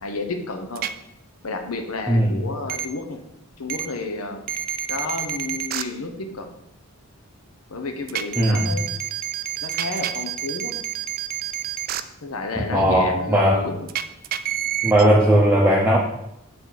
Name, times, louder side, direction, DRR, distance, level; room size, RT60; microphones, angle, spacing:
voice 1, 0.0-0.9 1.4-3.2 3.6-4.5 4.9-6.5 7.7-8.9 9.6-10.9 12.2-13.9, left 3 dB, 80° left, 5 dB, 0.8 m, -31 dB
sound 1, 0.8-0.9 2.7-2.9 3.7-3.9 4.5-5.8 8.1-12.0 13.9-15.0, right 10 dB, 45° right, 0.3 m, -28 dB
voice 2, 8.4-8.7 12.7-13.7 14.8-16.0, equal, 10° right, -3 dB, 0.7 m, -17 dB
6.6 x 4.3 x 4.6 m, 0.81 s
head